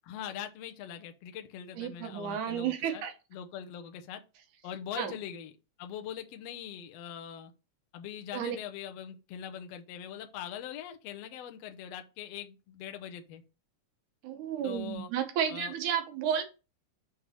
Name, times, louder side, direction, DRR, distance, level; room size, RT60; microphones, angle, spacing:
voice 1, 0.0-3.0 3.3-4.2 4.6-5.5 5.8-7.5 7.9-13.4 14.6-15.1 15.5-15.7, left 9 dB, 70° left, 1.7 m, -42 dB
voice 2, 1.8-3.1 5.0-5.1 8.3-8.6 14.2-16.4, right 9 dB, 85° right, 2.5 m, -32 dB
6.1 x 3.7 x 5.5 m
omnidirectional pair, 3.4 m